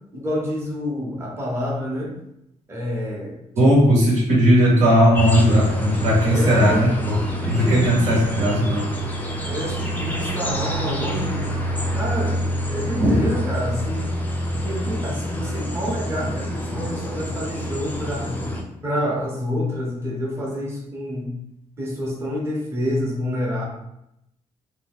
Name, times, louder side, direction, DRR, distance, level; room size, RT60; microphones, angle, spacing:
voice 1, 0.1-2.1 2.7-3.9 6.2-6.8 7.5-8.2 9.5-11.6 11.9-14.1 14.6-18.3 18.8-21.3 21.8-23.6, equal, 20° right, -3 dB, 0.7 m, -28 dB
voice 2, 3.5-8.9 13.0-13.3, equal, 80° right, -5 dB, 0.9 m, -17 dB
sound 1, 5.2-18.6, equal, 15° left, 0.3 m, -27 dB
2.6 x 2.2 x 3.5 m, 0.82 s
cardioid pair, 180°, 13 cm